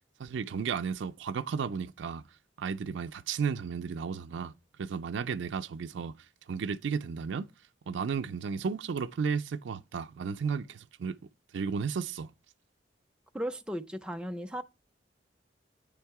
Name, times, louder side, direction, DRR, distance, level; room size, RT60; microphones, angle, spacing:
voice 1, 0.2-2.2 2.6-4.5 4.8-6.1 6.5-7.5 7.9-11.2 11.5-12.3, right 6 dB, 75° right, 0.4 m, -33 dB
voice 2, 13.3-14.6, equal, 5° right, 0.4 m, -36 dB
9.0 x 3.6 x 4.6 m
head